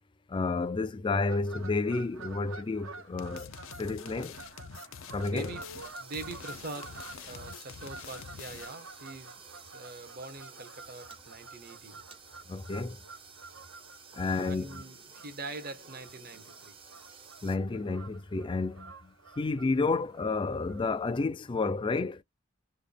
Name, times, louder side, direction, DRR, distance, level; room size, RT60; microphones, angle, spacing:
voice 1, 0.3-3.5 3.8-4.4 5.1-5.6 12.5-13.0 14.1-14.8 17.4-22.2, left 3 dB, 25° left, 0.3 m, -31 dB
Fowl / Bird vocalization bird call bird song, 1.3-21.2, right 3 dB, 80° right, 1.0 m, -50 dB
sound 1, 3.2-8.9, left 7 dB, 80° left, 0.5 m, -46 dB
voice 2, 5.3-5.6 6.0-9.4 9.7-12.0 14.2-16.7, right 3 dB, 50° right, 1.0 m, -44 dB
sound 2, 5.8-17.6, right 5 dB, 25° right, 0.6 m, -53 dB
3.4 x 2.1 x 3.7 m
head